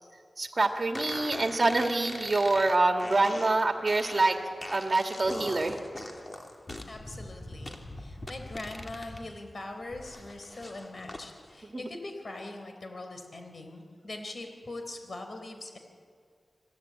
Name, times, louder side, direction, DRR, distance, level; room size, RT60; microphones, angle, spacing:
voice 1, 0.4-4.4 4.6-5.8 11.7-11.8, right 2 dB, 40° right, 4 dB, 2.2 m, -26 dB
sound 1, 0.9-9.3 9.6-11.2, left 1 dB, 30° left, 2.7 m, -42 dB
voice 2, 6.9-15.8, left 2 dB, 50° left, 5 dB, 3.9 m, -42 dB
26.5 x 17.5 x 8.9 m, 2.2 s
wide cardioid pair, 90°, 0 cm